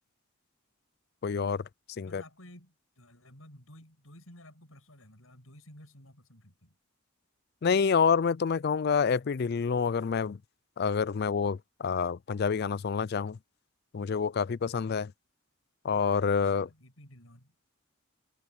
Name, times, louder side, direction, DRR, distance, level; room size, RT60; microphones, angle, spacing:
voice 1, 1.2-1.7 2.0-2.2 7.6-10.4 10.8-13.4 13.9-15.1 15.8-16.7, left 6 dB, 50° left, 0.4 m, -27 dB
voice 2, 2.1-6.8 16.4-17.5, left 1 dB, 80° left, 7.8 m, -53 dB
head